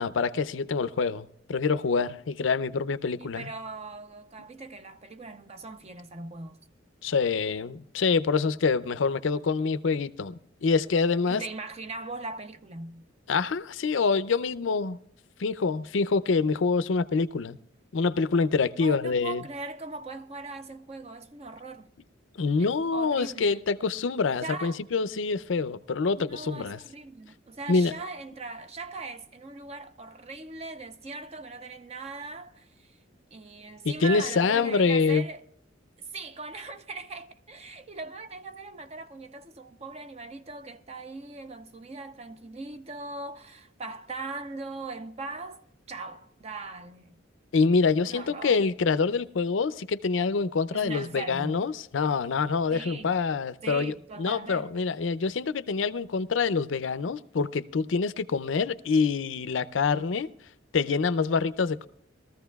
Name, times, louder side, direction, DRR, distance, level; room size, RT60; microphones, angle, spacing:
voice 1, 0.0-3.5 7.0-11.4 13.3-15.0 15.4-17.6 17.9-19.4 22.4-26.8 27.7-27.9 33.8-35.2 47.5-60.3 60.7-61.9, left 4 dB, 85° left, 0.5 m, -26 dB
voice 2, 3.2-6.6 11.3-13.0 18.8-21.9 22.9-23.6 24.4-24.8 26.2-33.0 33.3-35.4 36.1-47.2 48.0-48.6 50.7-51.7 52.7-53.2 53.6-54.8, right 3 dB, 35° right, 0.6 m, -40 dB
21.0 x 14.0 x 2.3 m
head